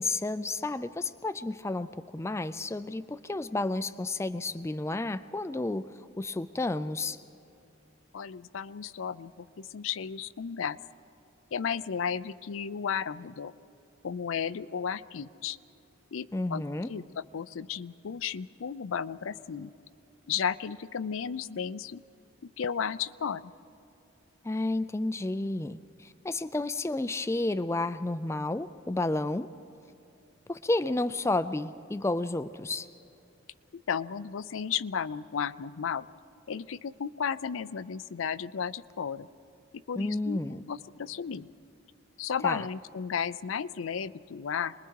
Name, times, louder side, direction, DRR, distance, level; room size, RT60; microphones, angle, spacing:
voice 1, 0.0-1.9 2.1-5.9 6.2-7.2 16.3-16.9 24.4-29.5 30.5-32.9 40.0-40.6 42.4-42.7, left 2 dB, 15° left, 12 dB, 0.3 m, -31 dB
voice 2, 8.1-10.8 11.5-13.5 14.0-15.6 16.1-19.7 20.3-22.0 22.4-23.4 33.7-36.1 36.5-39.3 39.9-40.4 40.7-41.5 42.2-44.7, left 7 dB, 75° left, 15 dB, 0.5 m, -34 dB
26.5 x 20.5 x 4.7 m, 2.8 s
head